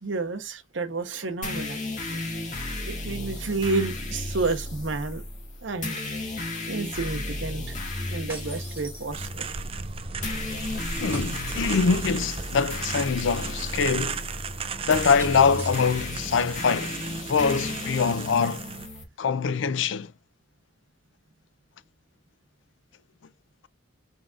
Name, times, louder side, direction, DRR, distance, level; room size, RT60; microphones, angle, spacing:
voice 1, 0.0-1.8 2.8-5.2 5.6-6.0 6.7-7.8 8.1-9.4, right 3 dB, 70° right, 0.9 m, -30 dB
sound 1, 1.4-19.0, left 2 dB, 40° left, 1.9 m, -34 dB
sound 2, 8.3-9.6 11.1-12.1 15.2-16.4, right 2 dB, 10° right, 2.1 m, -42 dB
sound 3, 9.1-18.9, right 5 dB, 30° right, 0.5 m, -36 dB
voice 2, 11.0-14.2 14.9-17.0 17.3-18.6 19.2-20.1, left 5 dB, 65° left, 0.4 m, -24 dB
4.9 x 3.9 x 2.4 m
head